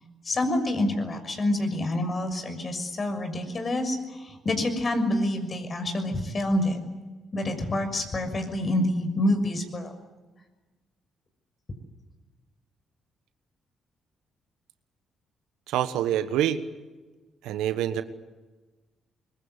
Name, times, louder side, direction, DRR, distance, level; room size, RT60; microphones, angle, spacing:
voice 1, 0.2-6.8 7.3-9.9, left 1 dB, 40° left, 7 dB, 6.4 m, -27 dB
voice 2, 15.7-16.6 17.4-18.0, right 11 dB, 75° right, 11 dB, 1.4 m, -26 dB
24.5 x 22.5 x 9.8 m, 1.2 s
hypercardioid pair, 45°, 0 cm